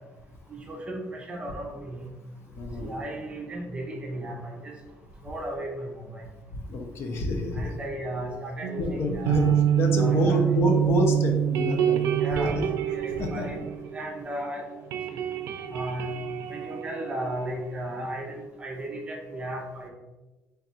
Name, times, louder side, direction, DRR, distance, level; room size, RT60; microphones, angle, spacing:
voice 1, 0.5-2.1 2.8-4.7 5.2-6.2 7.5-9.5 10.0-10.4 12.1-13.6 13.9-14.6 15.1-15.2 15.7-16.1 16.5-19.9, right 1 dB, 20° right, 0 dB, 0.7 m, -35 dB
voice 2, 2.6-2.9 6.5-7.7 8.8-12.0 12.6-12.7 13.2-13.6, left 2 dB, 50° left, 3 dB, 0.5 m, -28 dB
sound 1, 8.6-14.4 14.7-18.1, right 10 dB, 85° right, 0.4 m, -27 dB
3.5 x 2.4 x 4.2 m, 1.1 s
cardioid pair, 160°, 5 cm